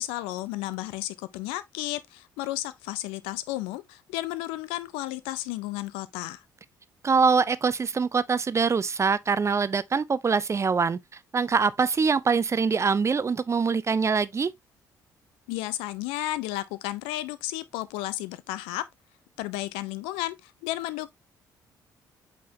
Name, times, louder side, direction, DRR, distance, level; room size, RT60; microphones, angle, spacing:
voice 1, 0.0-6.4 15.5-18.8 19.4-21.1, left 16 dB, 70° left, 0.5 m, -33 dB
voice 2, 7.0-11.0 11.3-14.5, right 5 dB, 30° right, 0.5 m, -24 dB
8.3 x 4.2 x 2.7 m
figure-of-eight pair, 45°, 10 cm